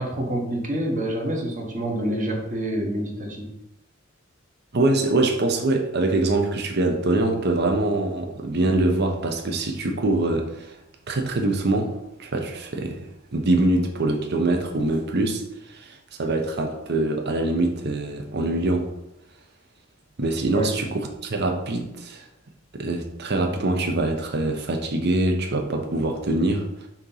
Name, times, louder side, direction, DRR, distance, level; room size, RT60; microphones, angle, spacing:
voice 1, 0.0-3.5 20.5-20.7, right 1 dB, 40° right, 1 dB, 1.2 m, -27 dB
voice 2, 4.7-10.8 11.1-11.9 12.2-13.0 13.3-15.4 15.7-18.9 20.2-22.2 22.7-26.9, right 2 dB, 55° right, 4 dB, 0.8 m, -24 dB
6.4 x 2.9 x 5.5 m, 0.85 s
head